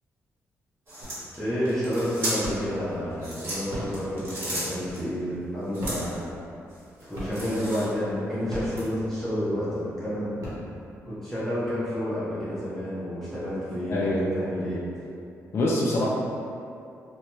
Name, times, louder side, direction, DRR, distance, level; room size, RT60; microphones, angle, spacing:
sound 1, 0.9-2.6 3.1-5.0 5.7-6.2 6.7-8.1 8.7-8.8, right 1 dB, 40° right, 1.3 m, -35 dB
sound 2, 1.0-1.5 1.9-2.9 3.5-5.3 5.7-6.8 7.1-7.7 8.3-9.4 9.9-10.0 10.2-11.1, equal, 70° right, 0.9 m, -37 dB
voice 1, 1.4-6.3 7.0-10.5 11.1-14.0 14.3-14.8, equal, 5° left, -12 dB, 0.7 m, -30 dB
voice 2, 13.9-14.3 15.5-16.1, left 1 dB, 50° left, -5 dB, 0.4 m, -24 dB
2.8 x 2.2 x 2.9 m, 2.6 s
cardioid pair, 100°, 6 cm